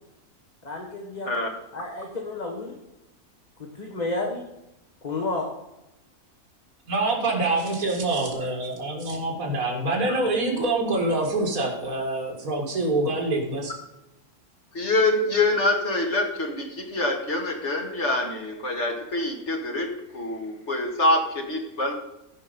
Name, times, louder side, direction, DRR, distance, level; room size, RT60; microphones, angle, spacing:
voice 1, 0.6-1.3 1.7-2.8 3.7-4.4 5.0-5.5, left 2 dB, 30° left, 0 dB, 1.4 m, -31 dB
voice 2, 6.9-13.7, right 2 dB, 70° right, -1 dB, 2.6 m, -25 dB
voice 3, 14.7-19.9 20.1-21.9, left 2 dB, 50° left, 2 dB, 2.2 m, -25 dB
15.0 x 5.3 x 5.4 m, 0.92 s
omnidirectional pair, 1.6 m